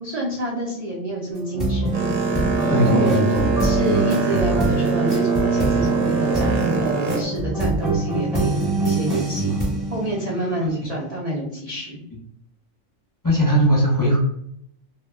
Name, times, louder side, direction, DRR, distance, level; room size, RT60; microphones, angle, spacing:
voice 1, 0.0-1.9 2.8-3.2 3.6-9.6 9.9-12.0, right 1 dB, 70° right, -3 dB, 0.3 m, -28 dB
sound 1, 1.3-10.9, right 2 dB, ahead, 0.9 m, -24 dB
Boat Water vehicle, 1.9-7.2, right 5 dB, 90° right, 1.1 m, -23 dB
voice 2, 2.7-3.4 13.2-14.2, equal, 20° left, -4 dB, 0.5 m, -18 dB
2.2 x 2.1 x 3.3 m, 0.72 s
omnidirectional pair, 1.4 m